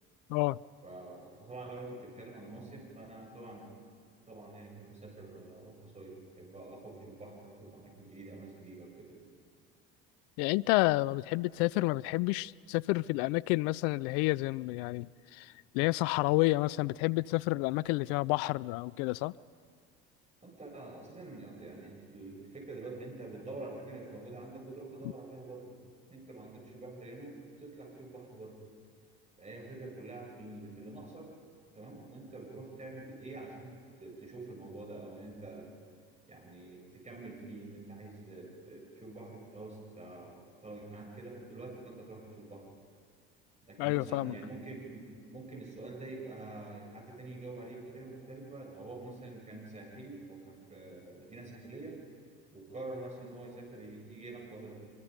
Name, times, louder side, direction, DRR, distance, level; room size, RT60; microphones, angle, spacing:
voice 1, 0.8-3.8 4.2-9.3 20.4-25.8 26.1-28.6 29.4-31.3 31.7-35.8 36.3-42.6 43.7-52.0 52.5-54.8, right 2 dB, 25° right, 7.5 m, -46 dB
voice 2, 10.4-19.3 43.8-44.3, left 21 dB, 70° left, 0.5 m, -30 dB
25.0 x 23.5 x 5.3 m
hypercardioid pair, 65°, 29 cm